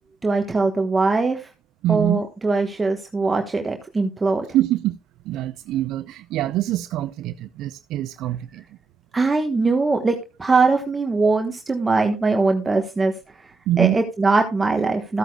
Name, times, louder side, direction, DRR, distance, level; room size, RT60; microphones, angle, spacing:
voice 1, 0.2-1.5 1.9-4.4 9.1-13.1 13.8-15.2, right 3 dB, 20° right, 1.2 m, -21 dB
voice 2, 1.8-2.2 4.5-5.0 5.3-8.6 11.2-11.3 13.7-14.0, right 14 dB, 60° right, 0.4 m, -24 dB
14.0 x 9.0 x 2.3 m
hypercardioid pair, 75°, 0 cm